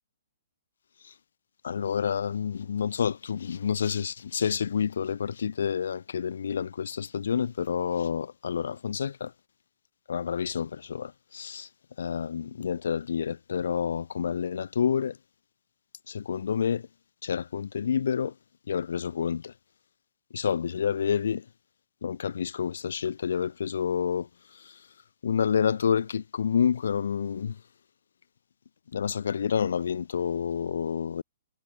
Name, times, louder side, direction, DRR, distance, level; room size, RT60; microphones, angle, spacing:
voice 1, 1.6-9.3 10.1-11.7 12.0-15.2 16.1-16.9 17.2-18.4 18.7-19.5 20.3-21.5 22.0-24.9 25.2-27.6 28.9-31.2, left 7 dB, 75° left, 0.8 m, -29 dB
hypercardioid pair, 170°, 0 cm